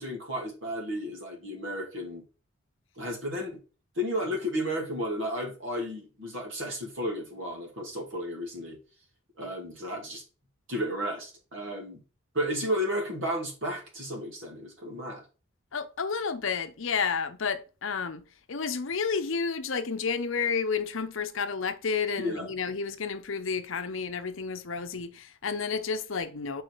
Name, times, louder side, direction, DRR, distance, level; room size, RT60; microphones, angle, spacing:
voice 1, 0.0-2.2 3.0-3.6 4.0-8.8 9.4-10.2 10.7-12.0 12.3-15.2 22.2-22.5, equal, 60° right, 2.3 m, -33 dB
voice 2, 15.7-18.2 18.5-26.6, left 5 dB, 65° left, 0.7 m, -31 dB
4.8 x 4.7 x 4.6 m
head